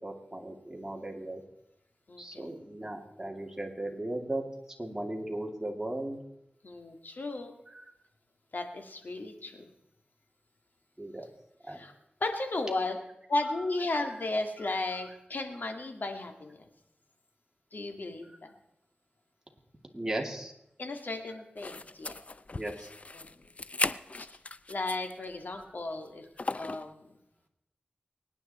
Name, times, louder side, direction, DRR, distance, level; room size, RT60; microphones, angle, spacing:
voice 1, 0.0-1.4 2.2-4.4 4.8-6.2 7.7-7.9 11.0-11.3 11.6-11.8 14.6-15.1 18.2-18.4 19.9-20.5 22.6-22.9 25.5-25.7, right 1 dB, 15° right, 2 dB, 2.7 m, -37 dB
voice 2, 2.1-2.5 6.6-7.5 8.5-9.6 11.8-11.9 12.2-13.0 13.3-16.7 17.7-18.5 20.8-22.2 23.1-23.5 24.2-24.3 24.7-27.1, left 2 dB, 65° left, 5 dB, 2.1 m, -35 dB
sound 1, 21.6-25.2 25.6-25.7 26.4-26.9, left 3 dB, 45° left, 0.5 m, -36 dB
24.0 x 9.9 x 4.3 m, 0.85 s
wide cardioid pair, 65°, 3 cm